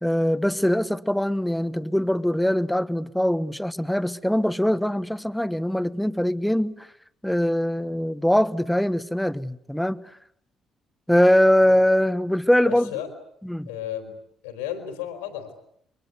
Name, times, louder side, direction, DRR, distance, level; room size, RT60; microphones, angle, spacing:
voice 1, 0.0-6.9 7.2-10.1 11.1-12.9 13.4-13.7, equal, 5° left, 1.2 m, -22 dB
voice 2, 12.6-13.1 13.7-14.2 14.4-15.5, left 10 dB, 75° left, 3.9 m, -33 dB
29.5 x 23.5 x 8.2 m
figure-of-eight pair, 45°, 0 cm